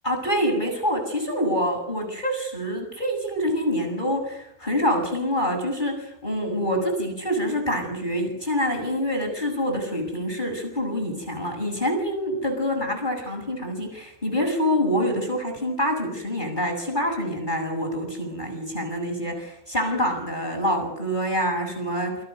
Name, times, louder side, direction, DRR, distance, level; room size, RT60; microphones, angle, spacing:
voice 1, 0.0-22.2, equal, 10° left, 3 dB, 7.0 m, -26 dB
28.5 x 25.5 x 6.8 m, 0.76 s
omnidirectional pair, 4.5 m